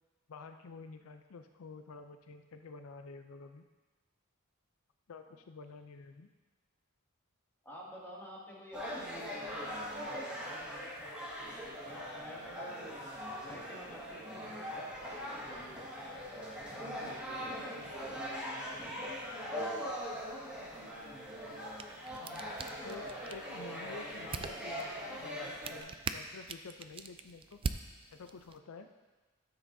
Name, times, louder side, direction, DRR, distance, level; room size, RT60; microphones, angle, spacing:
voice 1, 0.3-3.7 5.1-6.3 22.2-22.5 22.8-27.6 28.1-28.9, left 4 dB, 90° left, 7 dB, 0.5 m, -50 dB
voice 2, 7.6-12.8 13.4-16.0 16.6-20.1 20.5-20.7, equal, 10° left, -6 dB, 2.2 m, -52 dB
sound 1, 8.7-25.8, equal, 5° right, 1.9 m, -41 dB
sound 2, 21.5-28.6, right 4 dB, 25° right, 0.3 m, -44 dB
13.5 x 7.4 x 2.7 m, 1.2 s
head